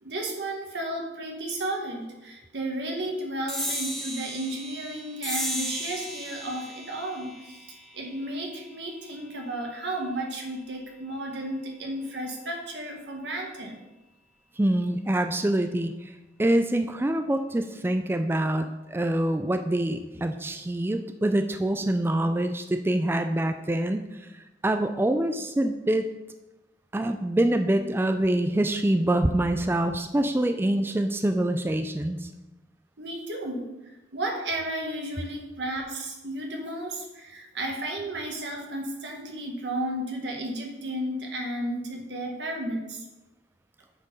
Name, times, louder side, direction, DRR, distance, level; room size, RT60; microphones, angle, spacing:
voice 1, 0.0-7.6 7.9-13.8 33.0-33.7 34.1-43.0, right 1 dB, 90° right, 1 dB, 1.6 m, -33 dB
sound 1, 3.5-10.3, equal, 5° left, 1.0 m, -36 dB
voice 2, 14.6-15.9 16.4-24.1 24.6-26.1 26.9-32.3, right 1 dB, 15° right, 7 dB, 0.3 m, -25 dB
7.8 x 4.5 x 5.4 m, 1.0 s
head